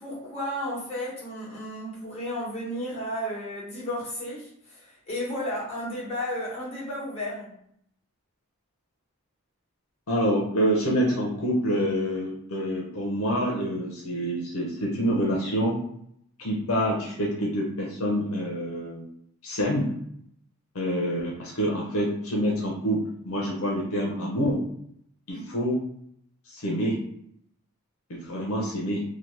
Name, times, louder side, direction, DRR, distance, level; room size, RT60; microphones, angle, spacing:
voice 1, 0.0-7.5 25.3-25.6, equal, 25° left, -8 dB, 1.3 m, -33 dB
voice 2, 10.1-15.8 16.4-19.0 19.4-19.9 20.7-24.6 25.3-25.8 26.5-27.0 28.1-29.0, equal, 70° left, -3 dB, 0.7 m, -27 dB
3.0 x 2.1 x 3.2 m, 0.69 s
head